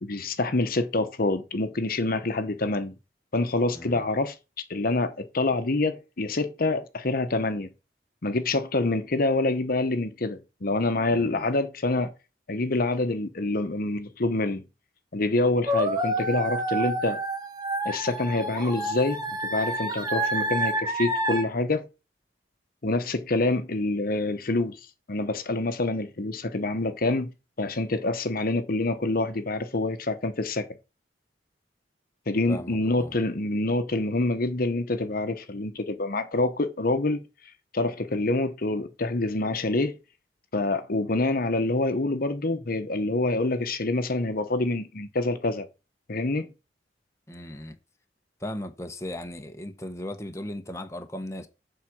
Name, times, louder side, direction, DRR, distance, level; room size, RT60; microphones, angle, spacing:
voice 1, 0.0-2.9 3.3-7.7 8.2-12.1 12.5-14.6 15.1-17.2 17.8-21.8 22.8-24.8 25.1-27.3 27.6-30.7 32.3-37.2 37.7-40.0 40.5-45.7 46.1-46.5, left 2 dB, 55° left, 1.0 m, -26 dB
voice 2, 3.7-4.1 11.1-11.4 32.5-33.2 47.3-47.7 48.4-51.5, left 1 dB, 15° left, 1.0 m, -37 dB
sound 1, 15.7-21.4, right 1 dB, 25° right, 1.5 m, -28 dB
7.5 x 4.8 x 6.3 m
head